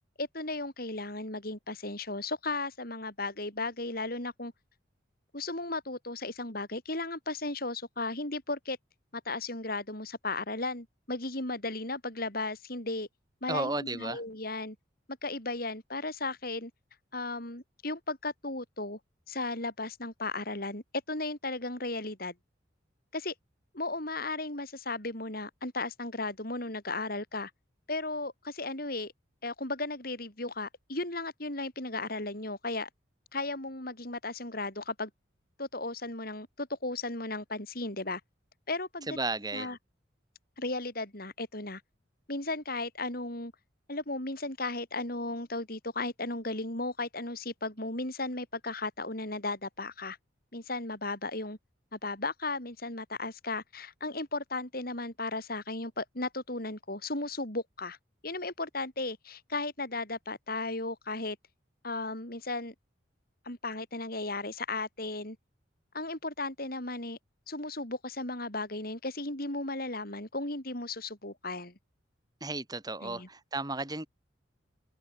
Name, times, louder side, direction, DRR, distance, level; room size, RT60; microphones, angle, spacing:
voice 1, 0.2-4.5 5.3-8.8 9.2-13.1 13.4-14.8 15.2-16.7 17.1-19.0 19.3-22.3 23.1-23.3 23.7-27.5 27.9-29.1 29.4-32.9 33.3-35.1 35.6-38.2 38.7-39.2 39.5-39.8 40.6-41.8 42.3-43.5 43.9-50.2 50.5-51.6 51.9-58.0 58.2-61.4 61.8-62.7 63.4-65.4 65.9-67.2 67.5-71.8 73.0-73.3, left 2 dB, 50° left, 6.1 m, -35 dB
voice 2, 13.5-14.2 39.1-39.7 72.4-74.1, right 2 dB, 20° right, 4.3 m, -34 dB
open air
head